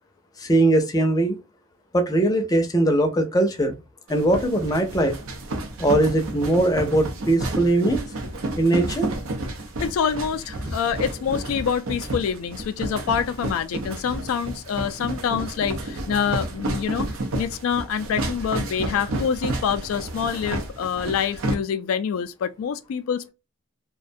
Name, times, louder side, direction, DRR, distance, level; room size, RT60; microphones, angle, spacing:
voice 1, 0.4-1.4 1.9-3.8 4.1-5.2 5.8-8.0 8.6-9.1, right 1 dB, 20° left, 0.5 m, -20 dB
sound 1, 4.1-21.5, right 2 dB, 85° right, 0.6 m, -31 dB
voice 2, 9.8-17.1 17.3-23.3, left 7 dB, 90° left, 0.3 m, -26 dB
2.4 x 2.2 x 2.5 m
head